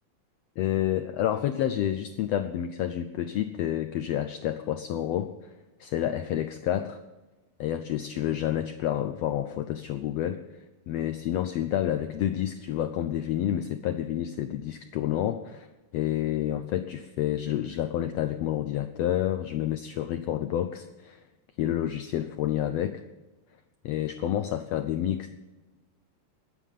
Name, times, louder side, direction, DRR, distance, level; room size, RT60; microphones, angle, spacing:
voice 1, 0.6-5.5 5.8-7.0 7.6-15.7 15.9-21.2 21.6-23.0 23.8-25.3, left 11 dB, 90° left, 10 dB, 1.4 m, -29 dB
20.5 x 9.1 x 5.7 m, 1.2 s
omnidirectional pair, 3.7 m